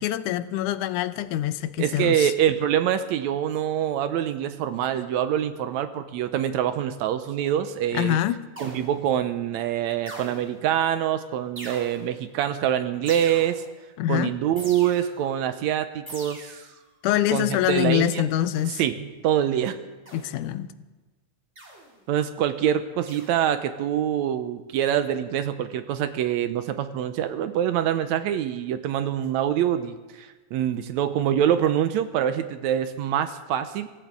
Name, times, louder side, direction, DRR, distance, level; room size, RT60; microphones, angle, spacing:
voice 1, 0.0-2.3 7.9-8.5 14.0-14.4 17.0-18.8 20.1-20.7, left 12 dB, 90° left, 2.2 m, -25 dB
voice 2, 1.8-8.2 8.6-13.6 14.1-16.6 17.3-18.2 18.8-19.8 22.1-33.9, right 10 dB, 75° right, 1.9 m, -25 dB
sound 1, 8.6-9.2 10.1-10.7 11.6-12.3 13.1-13.8 14.6-15.3 16.1-16.8 18.6-18.9 20.1-20.5 21.6-22.0 23.1-23.5, right 1 dB, 25° right, 2.6 m, -42 dB
24.5 x 15.0 x 3.6 m
omnidirectional pair, 3.5 m